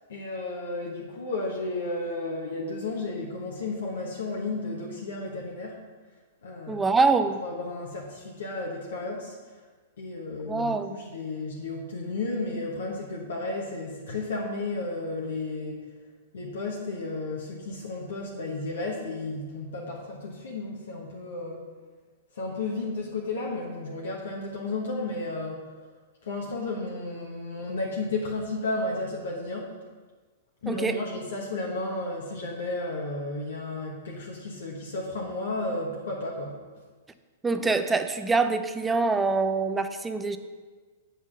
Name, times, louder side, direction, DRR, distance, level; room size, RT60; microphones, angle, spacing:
voice 1, 0.1-5.8 6.4-6.9 7.4-9.4 10.0-15.9 16.3-21.7 22.3-25.7 26.2-29.8 30.6-36.6, left 2 dB, 65° left, -2 dB, 1.3 m, -33 dB
voice 2, 6.7-7.4 10.5-11.0 30.7-31.0 37.4-40.4, right 4 dB, 10° right, 9 dB, 0.5 m, -25 dB
8.1 x 5.6 x 6.3 m, 1.4 s
figure-of-eight pair, 105°, 0 cm